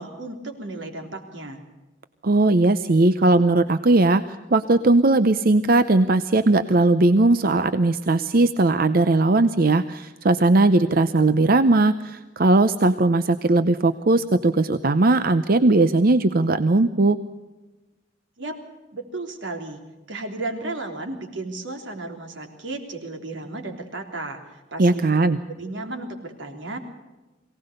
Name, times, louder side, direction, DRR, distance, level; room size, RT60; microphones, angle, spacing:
voice 1, 0.0-1.6 18.4-18.6 18.9-19.8 20.1-24.4 24.7-25.0 25.5-26.8, right 2 dB, 85° right, 4 dB, 3.4 m, -34 dB
voice 2, 2.2-17.2 24.8-25.4, right 2 dB, 50° right, 12 dB, 0.7 m, -18 dB
23.0 x 17.5 x 6.6 m, 1.1 s
head